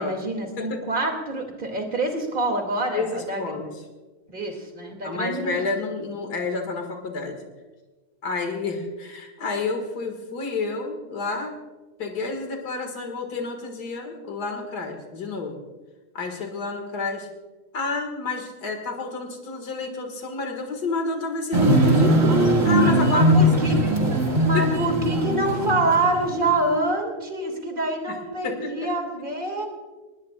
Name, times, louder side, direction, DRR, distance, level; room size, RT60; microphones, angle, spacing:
voice 1, 0.0-3.6 4.3-5.6 23.0-23.8 24.4-29.7, right 2 dB, 30° right, 3 dB, 2.8 m, -26 dB
voice 2, 2.9-3.7 5.0-7.5 8.2-11.6 12.0-15.6 16.1-17.3 17.7-22.2 22.6-23.3 23.6-23.9 24.4-24.7 28.1-28.2 28.4-28.9, left 3 dB, 75° left, 3 dB, 2.5 m, -29 dB
sound 1, 21.5-26.3 26.7-26.8, right 1 dB, 50° right, 2.6 m, -20 dB
24.0 x 20.0 x 2.5 m, 1.2 s
omnidirectional pair, 1.7 m